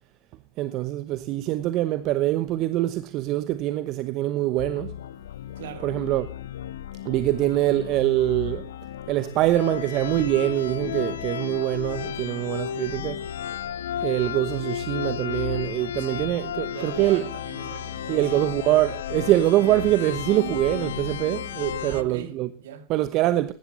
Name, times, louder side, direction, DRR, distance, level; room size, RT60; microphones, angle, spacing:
voice 1, 0.6-4.9 5.8-6.3 7.0-8.6 9.1-13.2 14.0-17.3 18.1-22.5 22.9-23.5, right 15 dB, 50° right, 0.9 m, -24 dB
sound 1, 4.6-22.0, left 10 dB, 75° left, 0.7 m, -33 dB
voice 2, 5.6-5.9 16.0-16.4 16.6-18.5 21.9-22.9, right 8 dB, 70° right, 1.9 m, -40 dB
16.0 x 11.5 x 4.1 m
figure-of-eight pair, 85°, 0 cm